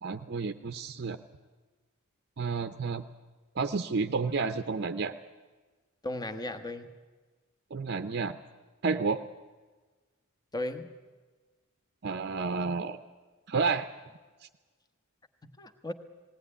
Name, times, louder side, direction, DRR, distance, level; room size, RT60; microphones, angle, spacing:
voice 1, 0.0-1.2 2.4-3.0 3.6-5.1 7.7-8.4 8.8-9.2 12.0-13.0 13.5-13.9, right 4 dB, 50° right, 9 dB, 0.6 m, -30 dB
voice 2, 6.0-6.9 10.5-10.9 15.4-15.9, left 1 dB, 20° left, 9 dB, 1.1 m, -36 dB
19.0 x 17.5 x 9.8 m, 1.3 s
head